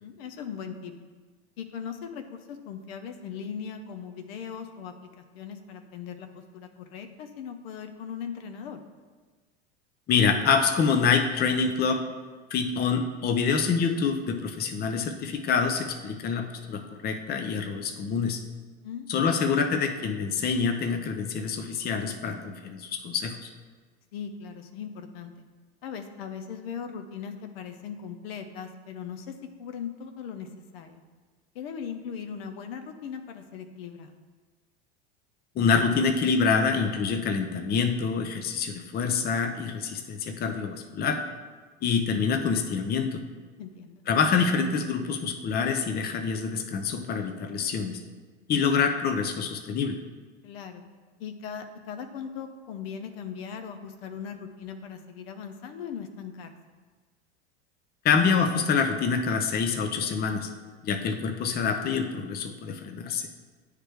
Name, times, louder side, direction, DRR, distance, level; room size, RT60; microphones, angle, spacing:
voice 1, 0.0-0.9 1.6-8.8 18.8-19.4 24.1-25.3 25.8-30.5 30.7-31.0 31.5-34.1 43.6-44.0 50.4-50.8 51.2-56.5, left 7 dB, 65° left, 6 dB, 0.7 m, -39 dB
voice 2, 10.1-12.0 12.5-18.4 19.1-23.5 35.6-41.2 41.8-43.2 44.1-48.0 48.5-50.0 58.0-60.5 60.8-63.3, left 5 dB, 30° left, 6 dB, 0.6 m, -26 dB
9.7 x 3.3 x 3.3 m, 1.4 s
hypercardioid pair, 90°, 32 cm